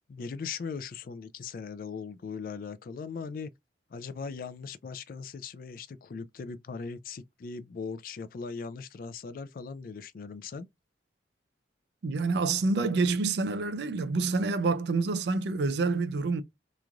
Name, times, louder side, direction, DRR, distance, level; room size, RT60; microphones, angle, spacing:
voice 1, 0.1-3.5 3.9-10.7, left 5 dB, 50° left, 0.3 m, -39 dB
voice 2, 12.0-16.4, right 3 dB, 65° right, 0.4 m, -27 dB
3.0 x 2.5 x 2.2 m
head